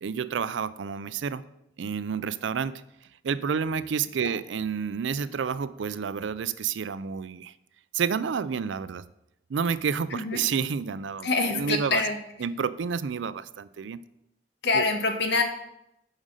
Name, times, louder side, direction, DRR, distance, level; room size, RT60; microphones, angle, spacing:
voice 1, 0.0-1.4 1.8-2.8 3.2-7.5 7.9-9.0 9.5-12.0 12.4-14.0 14.7-14.9, right 6 dB, 80° right, 16 dB, 0.4 m, -29 dB
voice 2, 10.1-10.4 11.2-12.2 14.6-15.4, left 3 dB, 65° left, 5 dB, 1.3 m, -25 dB
7.4 x 5.3 x 6.4 m, 0.83 s
head